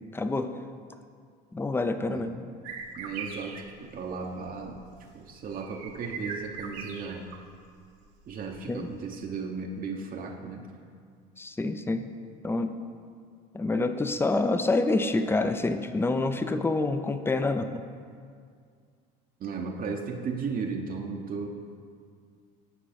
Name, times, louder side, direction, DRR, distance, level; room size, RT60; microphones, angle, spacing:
voice 1, 0.1-0.5 1.5-2.4 8.7-8.9 11.4-12.1 12.4-12.8 13.5-17.8, left 2 dB, 10° left, 9 dB, 0.5 m, -27 dB
sound 1, 2.6-7.5 7.8-8.8, right 5 dB, 80° right, 0.8 m, -41 dB
voice 2, 2.9-4.9 5.1-7.3 8.3-10.6 19.4-21.5, right 5 dB, 45° right, 1 dB, 0.8 m, -35 dB
9.2 x 4.5 x 4.2 m, 2.2 s
supercardioid pair, 80°, 20 cm